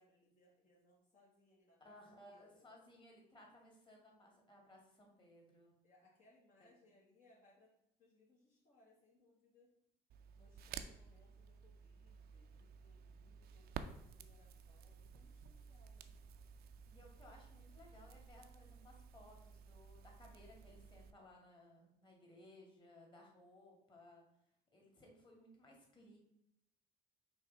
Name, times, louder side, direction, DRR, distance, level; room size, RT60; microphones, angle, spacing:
voice 1, 0.0-2.7 5.8-7.7 8.0-9.7 10.4-16.2, left 2 dB, 50° left, -5 dB, 1.5 m, -70 dB
voice 2, 1.8-5.8 6.6-6.7 16.9-24.2 24.7-26.2, left 1 dB, 30° left, -1 dB, 2.1 m, -61 dB
Crackle, 10.1-21.1, right 7 dB, 65° right, 0.5 m, -54 dB
5.5 x 3.2 x 5.3 m, 0.78 s
cardioid pair, 110°, 17 cm